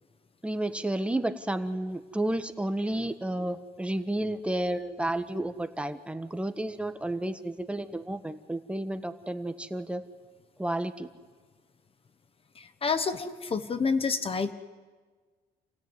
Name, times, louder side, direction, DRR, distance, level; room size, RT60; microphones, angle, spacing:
voice 1, 0.4-10.0 10.6-11.1, right 1 dB, 5° right, 9 dB, 1.4 m, -31 dB
voice 2, 12.5-14.5, left 5 dB, 35° left, 11 dB, 1.2 m, -28 dB
28.5 x 16.0 x 9.7 m, 1.4 s
cardioid pair, 110°, 17 cm